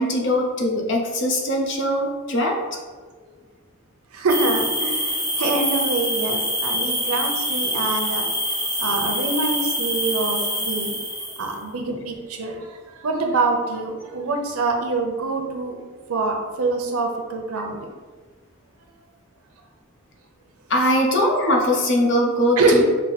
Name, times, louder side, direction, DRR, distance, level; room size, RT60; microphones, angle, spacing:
voice 1, 0.0-2.6 20.7-22.8, left 1 dB, 55° left, 0 dB, 0.8 m, -21 dB
voice 2, 4.1-10.9 11.4-15.8 16.1-17.9 22.6-22.8, right 3 dB, 90° right, 3 dB, 0.7 m, -25 dB
sound 1, 4.3-11.5, equal, 15° left, 1.1 m, -25 dB
5.4 x 2.2 x 4.1 m, 1.5 s
head